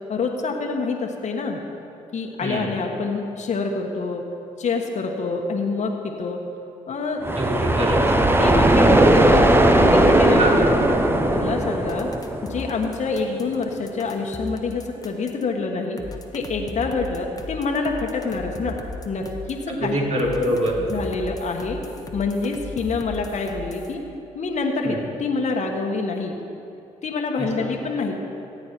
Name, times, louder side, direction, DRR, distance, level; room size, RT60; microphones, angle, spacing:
voice 1, 0.1-1.6 2.1-4.2 4.6-6.4 6.9-7.3 8.4-9.5 9.8-10.7 11.3-12.1 12.5-16.0 16.3-18.8 19.0-20.0 20.9-21.8 22.1-24.0 24.3-26.3 27.0-28.2, left 4 dB, 50° left, 1 dB, 1.3 m, -26 dB
sound 1, 7.2-13.0, right 1 dB, 15° right, 1.0 m, -18 dB
voice 2, 7.3-8.0 10.4-10.5 19.8-20.8 24.8-25.0 27.4-27.7, right 1 dB, 45° right, -3 dB, 3.4 m, -24 dB
sound 2, 11.9-15.4 16.0-19.6 20.2-23.9, left 2 dB, 25° left, 1.3 m, -37 dB
15.0 x 8.7 x 4.6 m, 2.7 s
hypercardioid pair, 55°, 16 cm